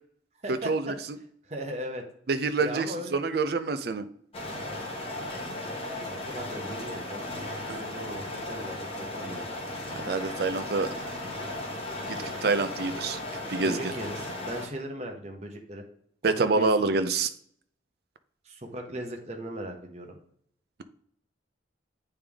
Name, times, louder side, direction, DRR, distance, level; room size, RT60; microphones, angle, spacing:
voice 1, 0.4-1.0 1.4-2.0 2.6-3.2 6.0-7.3 7.7-9.4 13.6-15.8 16.2-17.0 18.4-20.2, right 1 dB, 35° right, 2 dB, 1.0 m, -38 dB
voice 2, 2.3-4.0 7.7-7.8 10.1-10.9 12.1-13.2 13.5-13.8 16.2-17.3, right 3 dB, 55° right, 11 dB, 0.5 m, -26 dB
sound 1, 4.3-14.7, left 1 dB, 30° left, 1.0 m, -36 dB
8.8 x 3.4 x 3.5 m, 0.65 s
head